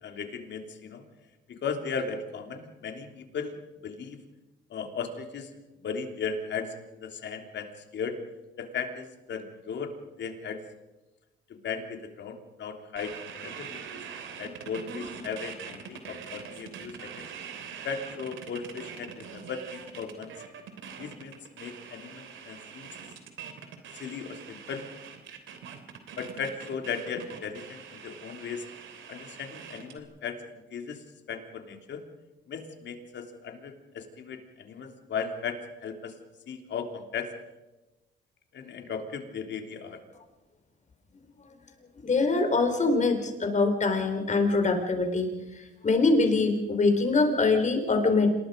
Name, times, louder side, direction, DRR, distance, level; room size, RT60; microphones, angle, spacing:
voice 1, 0.0-1.0 1.5-3.6 3.8-4.2 4.7-5.5 5.8-8.2 8.6-10.6 11.5-14.0 14.4-17.3 17.8-20.3 21.0-22.9 23.9-24.8 26.2-28.6 29.1-32.0 32.5-36.2 36.5-37.3 38.5-40.0, left 5 dB, 65° left, 5 dB, 3.2 m, -37 dB
sound 1, 13.0-30.0, right 7 dB, 80° right, 3.1 m, -43 dB
voice 2, 42.0-48.3, left 3 dB, 35° left, 5 dB, 4.6 m, -24 dB
27.5 x 20.0 x 5.3 m, 1.1 s
cardioid pair, 90°, 20 cm